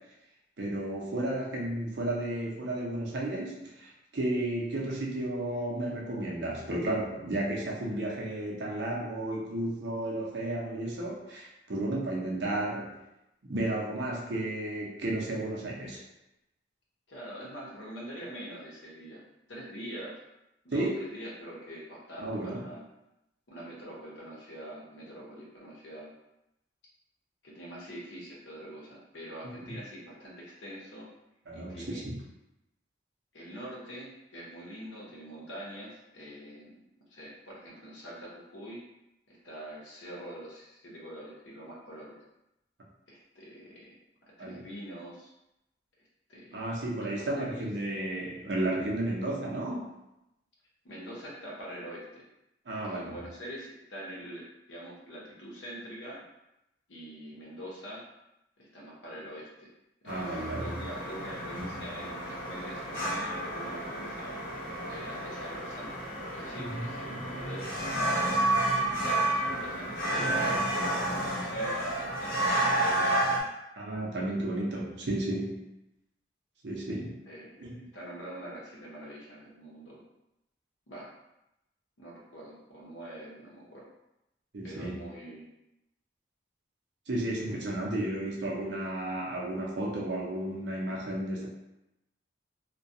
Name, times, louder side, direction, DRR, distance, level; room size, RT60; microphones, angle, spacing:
voice 1, 0.6-12.9 13.4-16.0 20.7-21.0 22.2-22.6 31.5-32.2 44.4-44.6 46.5-49.9 52.7-53.1 60.0-60.8 66.6-66.9 73.8-75.6 76.6-77.1 77.6-77.8 84.5-84.9 87.1-91.5, right 1 dB, 65° right, -3 dB, 0.6 m, -33 dB
voice 2, 17.1-19.2 19.5-20.1 20.6-22.8 23.5-26.1 27.4-31.1 31.5-32.0 33.3-36.8 37.1-38.8 39.3-42.2 43.1-44.0 44.4-45.3 46.3-46.6 47.0-47.7 50.8-52.2 52.8-56.2 56.9-58.0 58.6-59.7 60.0-64.3 64.9-66.0 66.3-67.7 68.5-73.0 77.3-80.0 80.9-81.1 82.0-83.9 84.6-85.5 87.4-87.9, right 1 dB, 80° left, -4 dB, 0.8 m, -44 dB
sound 1, 60.1-73.4, right 1 dB, 50° left, 0.6 m, -31 dB
2.3 x 2.2 x 2.6 m, 0.89 s
head